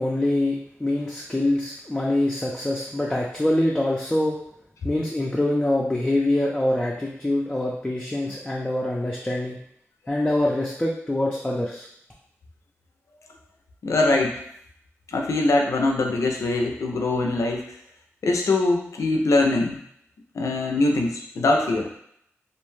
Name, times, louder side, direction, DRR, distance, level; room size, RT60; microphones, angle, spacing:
voice 1, 0.0-4.4 4.8-9.6 10.1-11.9, left 1 dB, 15° left, -4 dB, 0.4 m, -24 dB
voice 2, 13.8-14.4 15.1-17.8 18.2-19.8 20.3-21.9, left 2 dB, 90° left, 2 dB, 0.4 m, -22 dB
2.5 x 2.2 x 3.1 m, 0.71 s
wide cardioid pair, 75°, 5 cm